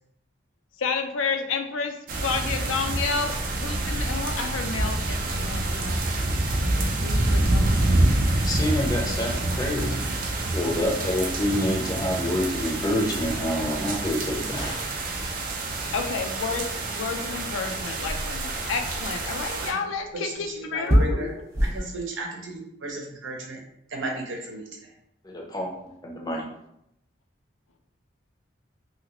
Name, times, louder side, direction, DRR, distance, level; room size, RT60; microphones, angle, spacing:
voice 1, 0.8-6.0 6.6-8.0 15.9-21.4, left 4 dB, 90° left, 5 dB, 0.5 m, -31 dB
sound 1, 2.1-19.7, right 2 dB, 45° right, 0.4 m, -27 dB
voice 2, 8.4-10.0 10.5-14.7 25.2-26.5, left 1 dB, 20° left, -1 dB, 0.5 m, -27 dB
sound 2, 14.6-15.3, left 1 dB, 70° left, 0.9 m, -40 dB
sound 3, 16.0-21.9, equal, 15° right, 0.8 m, -30 dB
voice 3, 20.1-21.3 21.6-23.6 23.9-24.9, right 2 dB, 85° right, 0 dB, 0.8 m, -35 dB
2.9 x 2.8 x 2.9 m, 0.80 s
head